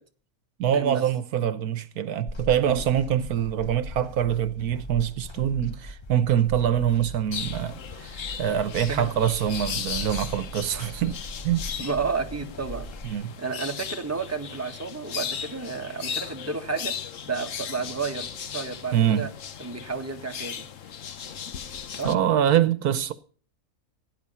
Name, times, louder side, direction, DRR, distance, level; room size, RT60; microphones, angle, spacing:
voice 1, 0.6-11.2 11.4-11.6 13.0-13.3 18.9-19.3 22.0-23.1, right 10 dB, 75° right, 1.4 m, -24 dB
sound 1, 2.3-13.1, equal, 25° left, 0.6 m, -40 dB
sound 2, 7.3-22.1, left 7 dB, 60° left, 1.3 m, -37 dB
voice 2, 11.8-12.9 13.4-16.9 17.2-19.3 19.6-20.6 21.9-22.1, right 4 dB, 10° right, 1.6 m, -31 dB
17.0 x 9.9 x 5.6 m
omnidirectional pair, 1.6 m